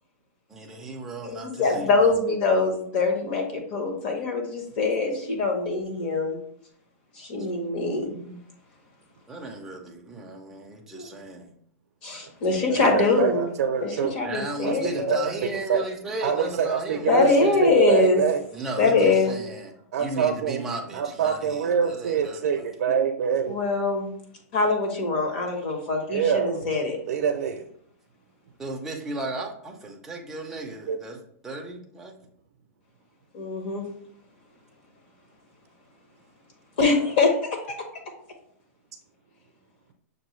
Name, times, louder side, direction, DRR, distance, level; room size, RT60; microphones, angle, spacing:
voice 1, 0.5-2.2 9.3-11.5 14.2-17.7 18.5-19.7 20.0-22.6 28.6-32.1, right 2 dB, 5° right, -1 dB, 0.4 m, -35 dB
voice 2, 1.2-6.4 7.2-8.4 10.9-11.1 12.0-13.5 13.8-15.5 17.1-18.2 18.8-19.3 23.5-24.1 24.5-27.0 33.3-33.9 36.8-37.5, left 3 dB, 40° left, 2 dB, 1.0 m, -23 dB
voice 3, 12.7-14.2 14.6-15.9 16.2-18.4 19.9-20.6 20.9-23.6 26.1-26.6 27.1-27.7 30.9-31.0 36.9-37.1, right 7 dB, 65° right, 3 dB, 0.5 m, -26 dB
6.1 x 2.6 x 3.0 m, 0.64 s
supercardioid pair, 175°, 8 cm